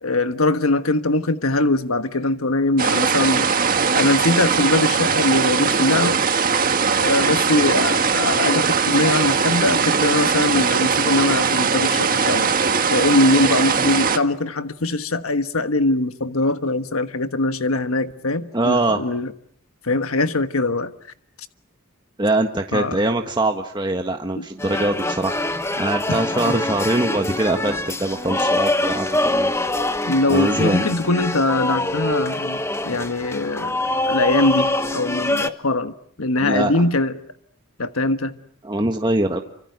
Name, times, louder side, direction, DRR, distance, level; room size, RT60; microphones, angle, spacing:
voice 1, 0.0-3.5 3.9-6.2 7.0-12.5 12.9-19.3 19.8-20.9 22.7-23.0 24.4-24.5 26.1-26.5 30.0-35.9 36.2-37.2 37.8-38.3, left 2 dB, 80° left, 1.4 m, -22 dB
sound 1, 2.8-14.2, right 5 dB, 40° right, 1.7 m, -20 dB
voice 2, 18.5-19.0 22.2-25.4 25.8-29.5 30.3-30.9 36.4-36.7 38.6-39.4, right 2 dB, 20° right, 1.5 m, -22 dB
sound 2, 24.6-35.5, left 1 dB, 15° left, 1.3 m, -24 dB
29.0 x 26.0 x 8.1 m
head